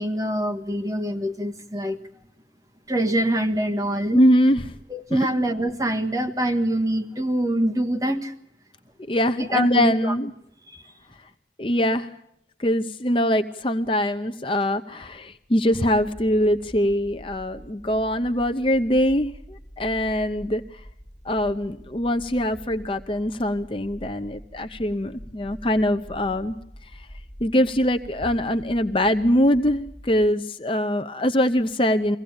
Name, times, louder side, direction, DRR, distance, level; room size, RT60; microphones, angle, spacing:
voice 1, 0.0-2.0 2.9-4.3 4.9-8.3 9.3-10.2 10.7-10.8, right 1 dB, 20° right, 6 dB, 1.4 m, -25 dB
voice 2, 4.1-4.7 5.1-5.2 9.1-10.3 11.6-12.1 12.6-20.8 21.2-26.6 26.9-27.1 27.4-32.2, equal, 30° left, 8 dB, 0.8 m, -23 dB
sound 1, 15.7-30.3, equal, 5° left, 4.7 m, -45 dB
23.5 x 16.5 x 8.8 m, 0.76 s
head